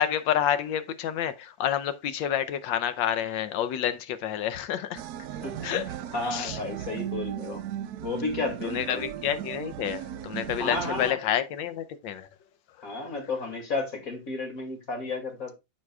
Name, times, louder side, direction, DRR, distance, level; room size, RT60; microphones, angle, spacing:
voice 1, 0.0-5.0 5.6-6.6 8.6-12.3 12.8-13.0, left 10 dB, 80° left, 1.4 m, -29 dB
sound 1, 4.9-11.1, right 11 dB, 70° right, 0.9 m, -37 dB
voice 2, 6.1-7.6 8.0-9.0 10.6-11.2 12.8-15.6, left 3 dB, 45° left, 2.6 m, -32 dB
13.5 x 5.2 x 2.3 m
omnidirectional pair, 2.0 m